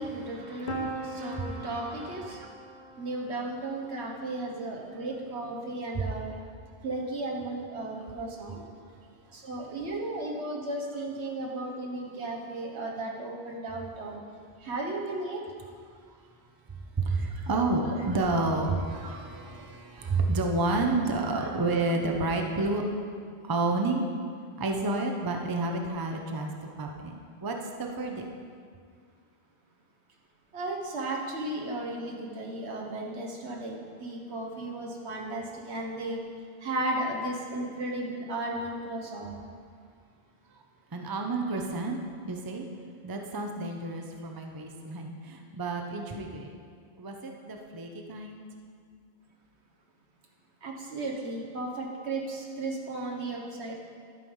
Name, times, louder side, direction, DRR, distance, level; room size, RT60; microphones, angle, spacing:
voice 1, 0.0-2.5 3.0-6.3 6.8-8.6 9.3-14.2 14.6-15.4 19.0-19.4 30.5-36.2 36.6-39.3 50.6-53.7, right 2 dB, 80° right, -1 dB, 1.5 m, -35 dB
voice 2, 0.6-1.6 5.9-6.1 8.8-8.9 16.1-16.2 16.7-22.9 23.4-24.1 24.6-26.5 26.8-28.2 40.5-40.6 40.9-42.0 42.2-42.7 43.0-46.6 47.0-48.4, right 2 dB, 25° right, 3 dB, 0.6 m, -30 dB
Piano, 0.7-6.4, right 1 dB, 50° left, 1.0 m, -42 dB
12.0 x 5.1 x 5.4 m, 2.1 s
omnidirectional pair, 1.1 m